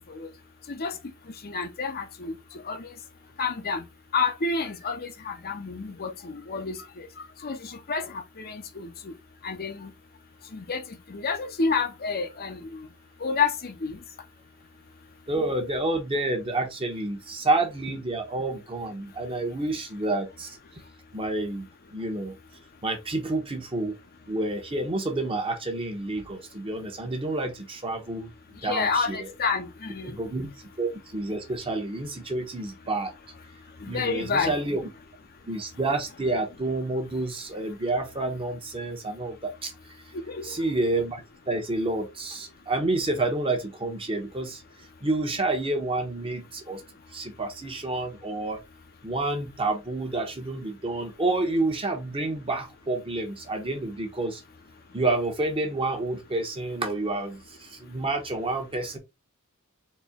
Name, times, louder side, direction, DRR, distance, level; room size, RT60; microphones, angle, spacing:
voice 1, 1.4-2.3 2.7-2.9 3.4-3.8 4.1-9.1 9.4-9.9 10.5-10.8 11.1-12.9 13.2-14.0 28.6-30.2 33.8-34.6 40.3-40.4, left 4 dB, 45° left, 0.8 m, -29 dB
voice 2, 15.3-20.6 21.1-22.3 22.8-23.9 24.3-29.3 30.0-30.5 30.8-33.1 33.9-34.8 35.5-39.7 40.4-41.2 41.5-44.6 45.0-46.8 47.1-48.6 49.0-54.4 54.9-59.0, right 2 dB, 25° right, 1.1 m, -29 dB
4.4 x 3.4 x 3.5 m
head